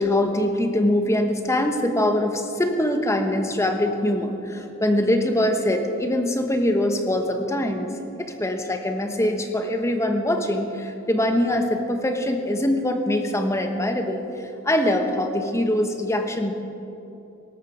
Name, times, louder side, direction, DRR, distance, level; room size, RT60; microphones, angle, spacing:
voice 1, 0.0-7.9 8.2-16.5, left 1 dB, 15° left, 5 dB, 1.2 m, -23 dB
18.0 x 13.0 x 5.1 m, 2.8 s
head